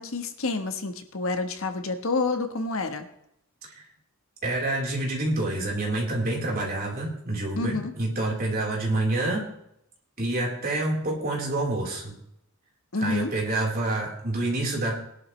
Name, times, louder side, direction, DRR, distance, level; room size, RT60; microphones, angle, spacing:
voice 1, 0.0-3.0 7.6-7.9 12.9-13.3, left 3 dB, 65° left, 7 dB, 1.4 m, -28 dB
voice 2, 4.4-9.5 10.2-12.1 13.0-15.0, right 2 dB, 45° right, -2 dB, 4.2 m, -27 dB
20.5 x 11.5 x 3.3 m, 0.75 s
head